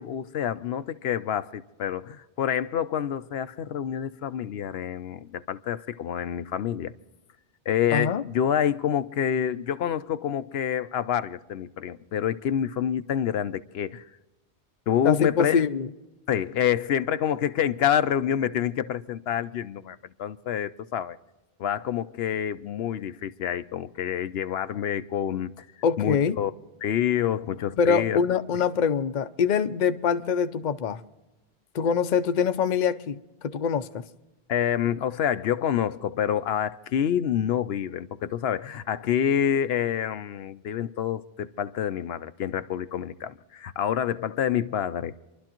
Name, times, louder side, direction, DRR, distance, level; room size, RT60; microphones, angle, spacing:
voice 1, 0.0-6.9 7.7-14.0 14.9-15.6 16.3-21.2 21.6-25.7 26.0-26.5 26.8-28.2 34.5-45.1, left 9 dB, 80° left, 0.9 m, -27 dB
voice 2, 7.9-8.2 15.0-15.9 25.8-26.4 27.8-31.0 31.7-34.0, left 6 dB, 50° left, 0.7 m, -24 dB
28.0 x 12.0 x 3.0 m
omnidirectional pair, 1.0 m